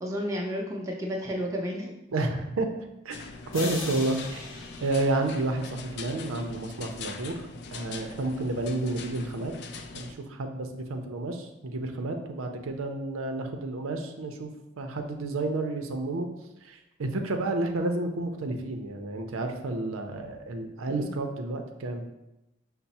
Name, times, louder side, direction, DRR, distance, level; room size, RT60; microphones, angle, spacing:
voice 1, 0.0-1.9 20.9-21.1, equal, 15° right, -2 dB, 0.6 m, -32 dB
voice 2, 2.1-2.7 3.0-3.2 3.5-7.4 7.7-9.5 9.9-14.5 14.8-16.3 16.6-22.1, right 2 dB, 85° right, 5 dB, 0.5 m, -30 dB
sound 1, 3.1-10.1, left 4 dB, 55° left, 0.3 m, -42 dB
sound 2, 3.5-6.4, left 3 dB, 80° left, 0.7 m, -40 dB
5.7 x 2.0 x 4.1 m, 0.92 s
head